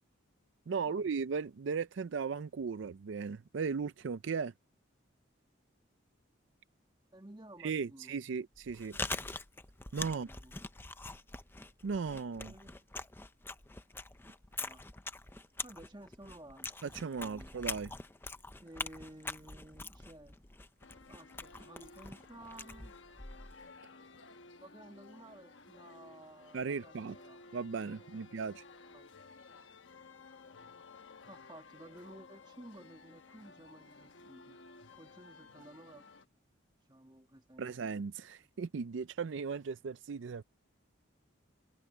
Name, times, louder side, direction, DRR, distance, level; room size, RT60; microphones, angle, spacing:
voice 1, 0.7-4.5 7.6-9.0 9.9-10.3 11.8-12.5 16.8-17.9 26.5-27.2 27.5-28.6 37.6-40.4, right 5 dB, 70° right, 0.4 m, -37 dB
voice 2, 7.1-8.2 10.0-10.7 12.4-12.8 14.6-14.8 15.6-16.7 17.0-17.6 18.6-20.4 21.1-23.0 24.6-27.4 27.9-28.2 28.9-29.1 31.3-34.6 34.9-36.0 36.9-37.9 38.4-38.5, right 1 dB, 20° right, 1.6 m, -54 dB
Chewing mastication, 8.6-23.7, left 3 dB, 10° left, 0.6 m, -44 dB
sound 1, 20.8-36.3, left 3 dB, 70° left, 1.2 m, -56 dB
head